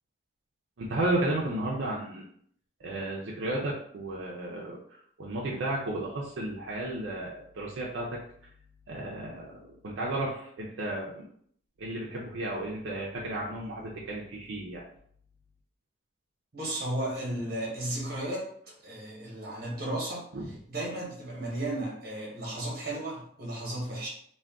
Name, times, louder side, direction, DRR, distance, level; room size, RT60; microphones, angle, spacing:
voice 1, 0.8-2.2 2.8-8.2 8.9-11.2 11.8-14.8 20.3-20.5, right 1 dB, 80° right, -4 dB, 0.5 m, -33 dB
voice 2, 16.5-20.3 20.7-24.1, right 1 dB, 50° right, -3 dB, 1.0 m, -34 dB
2.4 x 2.2 x 3.4 m, 0.65 s
head